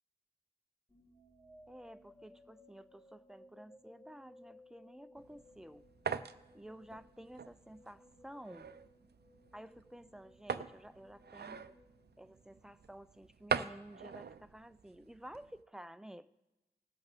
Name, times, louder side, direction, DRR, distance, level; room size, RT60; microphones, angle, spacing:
sound 1, 0.9-13.0, left 1 dB, 35° left, 4.7 m, -62 dB
voice 1, 1.7-5.8 6.5-8.7 9.5-11.7 12.2-16.3, right 1 dB, 5° right, 12 dB, 0.4 m, -52 dB
sound 2, 5.2-15.6, right 6 dB, 70° right, 0.5 m, -43 dB
19.0 x 8.1 x 3.5 m, 1.0 s
wide cardioid pair, 75°, 18 cm